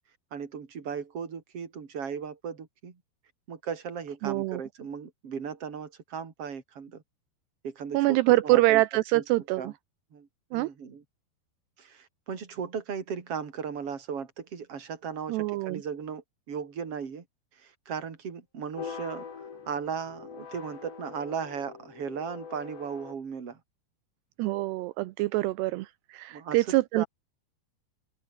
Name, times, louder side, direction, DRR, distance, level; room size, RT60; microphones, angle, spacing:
voice 1, 0.3-3.0 3.5-7.0 7.6-8.8 9.1-9.2 9.6-9.7 10.1-11.0 11.8-17.2 17.5-23.6 26.3-26.6 26.9-27.1, right 6 dB, 35° right, 3.9 m, -37 dB
voice 2, 4.2-4.6 7.9-9.7 10.5-10.7 15.3-15.8 24.4-27.0, right 19 dB, 80° right, 2.8 m, -25 dB
sound 1, 18.8-23.2, left 6 dB, 85° left, 7.1 m, -43 dB
open air
omnidirectional pair, 4.9 m